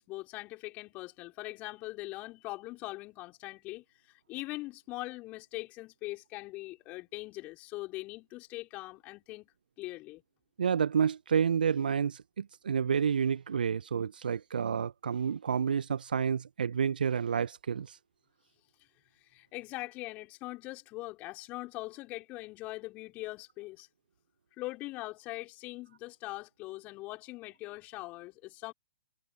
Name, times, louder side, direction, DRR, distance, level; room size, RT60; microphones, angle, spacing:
voice 1, 0.0-9.5 9.8-10.2 19.3-23.9 24.6-28.7, left 20 dB, 30° left, 4.3 m, -42 dB
voice 2, 10.6-18.0, right 7 dB, 70° right, 0.8 m, -29 dB
figure-of-eight pair, 115°, 5 cm